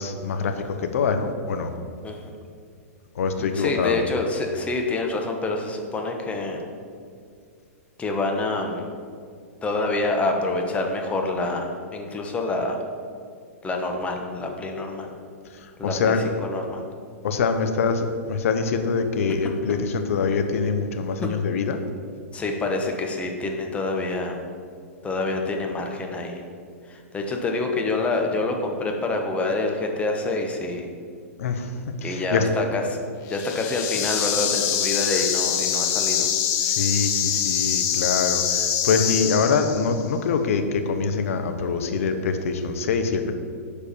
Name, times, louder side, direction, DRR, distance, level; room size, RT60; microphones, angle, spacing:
voice 1, 0.0-1.7 3.1-4.0 15.5-16.2 17.2-21.8 31.4-32.4 36.6-43.3, left 5 dB, 65° left, 7 dB, 0.9 m, -24 dB
voice 2, 3.4-6.6 8.0-8.9 9.6-12.8 13.6-15.1 15.8-16.8 22.3-24.4 25.0-26.4 26.9-30.9 32.0-33.0 33.3-36.3, left 2 dB, 15° left, 2 dB, 1.1 m, -27 dB
sound 1, 33.3-40.0, left 9 dB, 40° left, 0.8 m, -24 dB
6.9 x 4.7 x 6.9 m, 2.2 s
hypercardioid pair, 120°, 8 cm